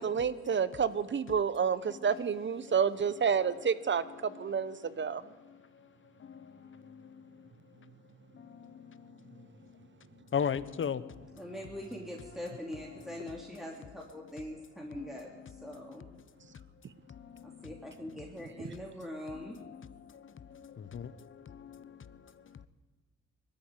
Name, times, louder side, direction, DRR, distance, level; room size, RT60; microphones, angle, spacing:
voice 1, 0.0-4.0 4.4-5.2, right 6 dB, 40° right, 15 dB, 1.2 m, -29 dB
voice 2, 1.8-2.8 4.0-5.9 6.2-7.9 8.3-9.9 10.1-11.4 14.9-15.1 15.6-16.0 16.4-16.6 17.1-17.7 19.6-22.7, left 7 dB, 40° left, 15 dB, 1.1 m, -41 dB
voice 3, 11.4-16.1 17.4-19.6, left 1 dB, ahead, -1 dB, 3.2 m, -43 dB
21.0 x 13.0 x 10.0 m, 1.3 s
cardioid pair, 90°, 30 cm